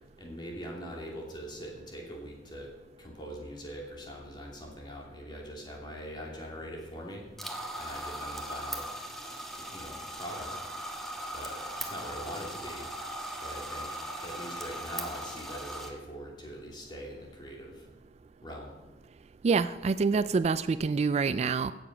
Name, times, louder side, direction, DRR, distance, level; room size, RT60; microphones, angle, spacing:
voice 1, 0.2-2.7 3.0-7.3 7.8-8.9 9.6-10.5 11.3-12.9 13.4-17.9 18.4-18.8, equal, 25° left, -1 dB, 2.9 m, -42 dB
sound 1, 7.4-15.9, equal, ahead, 1.4 m, -39 dB
voice 2, 19.4-21.7, right 4 dB, 40° right, 14 dB, 0.3 m, -26 dB
16.0 x 7.1 x 6.0 m, 1.2 s
head